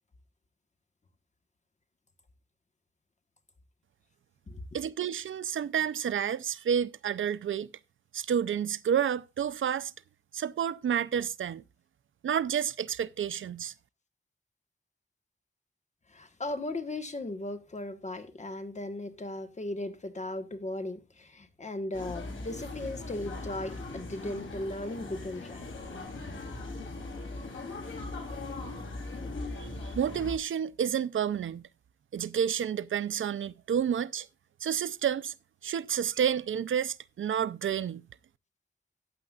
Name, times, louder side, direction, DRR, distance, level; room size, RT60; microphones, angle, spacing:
voice 1, 4.7-7.7 8.1-9.9 10.3-11.6 12.2-13.7 29.6-31.6 32.1-34.3 34.6-35.3 35.6-38.0, right 8 dB, 85° right, 0.5 m, -30 dB
voice 2, 16.1-25.6, left 2 dB, 35° left, 1.4 m, -37 dB
sound 1, 21.9-30.3, left 2 dB, 80° left, 3.3 m, -39 dB
14.0 x 9.0 x 2.4 m
wide cardioid pair, 135°, 20 cm